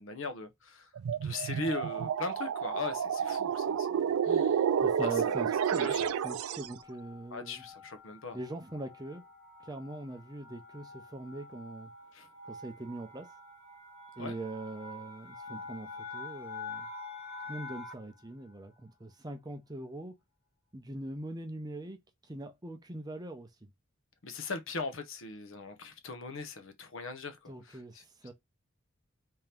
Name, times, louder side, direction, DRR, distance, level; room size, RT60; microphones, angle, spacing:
voice 1, 0.0-5.4 5.8-6.1 7.3-8.4 12.1-12.3 14.2-14.3 24.2-28.0, left 3 dB, 65° left, 0.8 m, -40 dB
sound 1, 1.0-6.7, right 8 dB, 80° right, 0.3 m, -30 dB
voice 2, 4.8-6.0 6.2-7.6 8.3-9.2 9.6-11.9 12.4-13.3 14.2-16.9 17.5-20.2 20.7-22.0 22.2-23.7 27.5-28.3, right 1 dB, 20° right, 0.6 m, -42 dB
sound 2, 6.1-18.2, left 3 dB, 90° left, 2.1 m, -47 dB
3.6 x 2.8 x 3.4 m
head